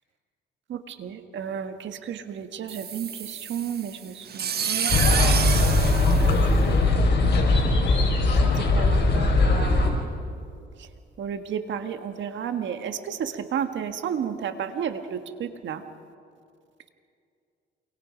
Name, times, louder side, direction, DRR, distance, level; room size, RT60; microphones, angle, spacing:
voice 1, 0.7-4.9 6.2-6.8 8.4-10.0 10.8-10.9 11.2-15.8, right 8 dB, 70° right, 8 dB, 1.6 m, -33 dB
sound 1, 2.7-7.0, right 8 dB, 55° right, 1.3 m, -29 dB
sound 2, 4.9-9.9, left 2 dB, 60° left, 5.0 m, -20 dB
28.0 x 23.5 x 5.2 m, 2.4 s
cardioid pair, 90°, 20 cm